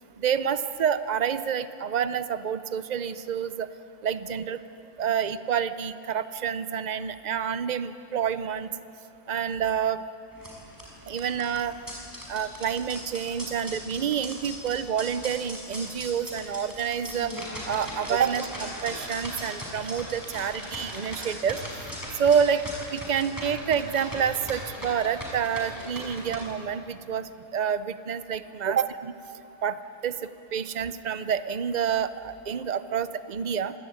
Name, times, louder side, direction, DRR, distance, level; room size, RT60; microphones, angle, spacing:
voice 1, 0.2-3.7 4.0-4.6 5.0-8.7 9.3-10.0 11.1-11.7 12.3-17.3 17.7-21.6 22.2-22.6 22.9-28.9 29.6-29.8 30.0-30.1 30.5-33.7, right 7 dB, 75° right, 13 dB, 0.4 m, -28 dB
sound 1, 10.3-26.4, equal, 10° right, 5.7 m, -39 dB
26.0 x 17.5 x 9.2 m, 2.9 s
omnidirectional pair, 1.7 m